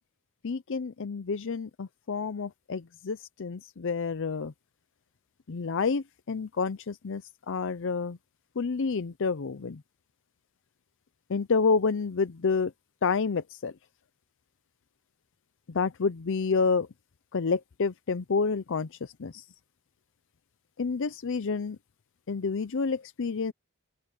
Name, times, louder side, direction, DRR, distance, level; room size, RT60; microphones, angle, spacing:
voice 1, 0.4-4.5 5.5-7.2 7.5-8.2 8.6-9.8 11.3-12.7 13.0-13.7 15.7-16.9 17.3-18.9 19.2-19.3 20.8-21.8 22.3-23.5, left 4 dB, 60° left, 0.6 m, -29 dB
head